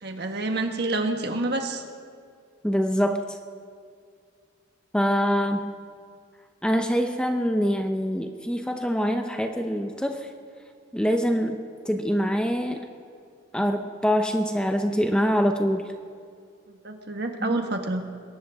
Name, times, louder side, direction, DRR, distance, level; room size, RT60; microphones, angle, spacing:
voice 1, 0.0-1.8 16.7-18.0, right 2 dB, 55° right, 4 dB, 1.5 m, -28 dB
voice 2, 2.6-3.4 4.9-5.7 6.6-10.3 10.9-12.9 13.5-15.9 17.4-17.6, equal, 5° left, 5 dB, 0.7 m, -24 dB
22.0 x 17.5 x 3.6 m, 2.2 s
head